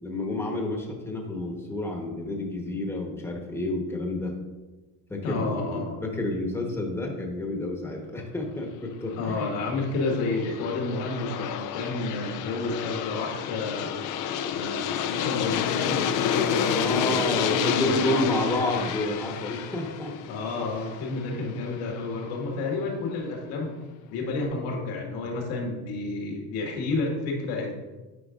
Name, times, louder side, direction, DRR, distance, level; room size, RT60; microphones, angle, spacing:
voice 1, 0.0-4.3 5.1-9.5 14.9-15.1 16.7-20.1 20.6-20.7, left 1 dB, 5° left, 1 dB, 1.2 m, -30 dB
voice 2, 5.2-6.0 9.2-14.0 14.5-18.9 20.3-23.7 24.1-27.7, left 3 dB, 75° left, 0 dB, 1.9 m, -30 dB
Aircraft, 9.2-22.0, left 9 dB, 50° left, 0.5 m, -30 dB
10.0 x 4.7 x 2.5 m, 1.2 s
supercardioid pair, 105°, 42 cm